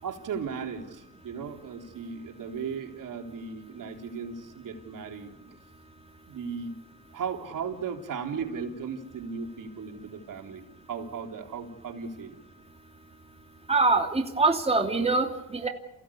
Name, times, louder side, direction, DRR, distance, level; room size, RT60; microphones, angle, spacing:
voice 1, 0.0-5.3 6.3-6.7 7.1-12.4, right 6 dB, 65° right, 3 dB, 3.7 m, -36 dB
voice 2, 13.7-15.7, right 3 dB, 15° right, 3 dB, 2.8 m, -24 dB
28.5 x 16.5 x 8.6 m, 0.90 s
cardioid pair, 75°, 34 cm